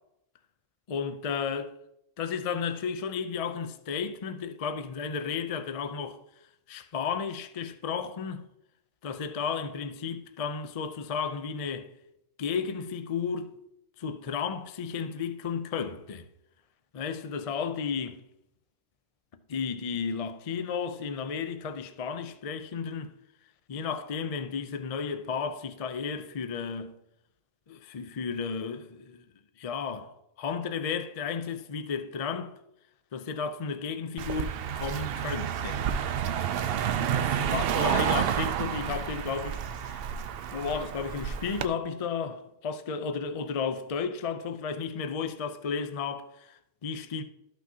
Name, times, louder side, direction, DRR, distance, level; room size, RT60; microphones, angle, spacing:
voice 1, 0.9-1.7 2.2-6.2 6.7-8.4 9.0-11.9 12.4-13.5 14.0-16.3 16.9-18.2 19.5-23.1 23.7-26.9 27.7-29.2 29.6-30.1 30.4-32.5 33.1-35.8 37.1-40.0 40.5-47.2, left 6 dB, 45° left, 0.4 m, -33 dB
Car passing by, 34.2-41.7, right 9 dB, 65° right, 0.6 m, -30 dB
13.0 x 6.0 x 2.8 m
omnidirectional pair, 1.3 m